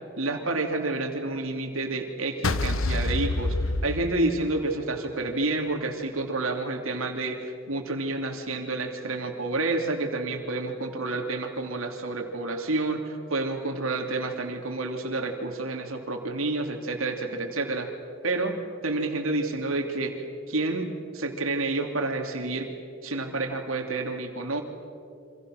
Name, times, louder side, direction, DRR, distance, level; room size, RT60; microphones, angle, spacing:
voice 1, 0.2-3.6 3.8-7.4 7.7-17.9 18.2-18.5 18.8-20.1 20.5-22.7 23.0-24.6, right 2 dB, 80° right, 4 dB, 3.1 m, -29 dB
sound 1, 2.4-4.8, left 2 dB, 80° left, 1.0 m, -27 dB
29.0 x 26.0 x 6.6 m, 2.5 s
head